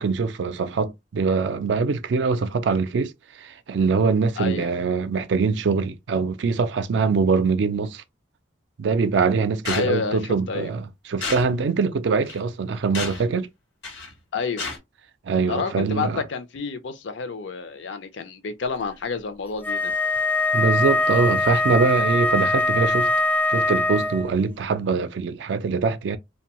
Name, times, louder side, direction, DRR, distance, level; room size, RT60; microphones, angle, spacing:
voice 1, 0.0-3.1 3.4-8.0 8.8-13.5 15.2-16.2 20.5-23.1 23.5-26.2, right 4 dB, 70° right, 0.4 m, -23 dB
voice 2, 4.4-4.7 9.7-10.7 14.3-14.7 15.5-19.9, left 5 dB, 70° left, 0.5 m, -29 dB
sound 1, 9.6-9.9 11.2-11.5 12.2-12.4 12.9-13.3 13.8-14.1 14.6-14.8, left 4 dB, 90° left, 1.1 m, -30 dB
Wind instrument woodwind instrument, 19.6-24.3, left 2 dB, 10° left, 0.4 m, -22 dB
2.6 x 2.2 x 2.9 m
head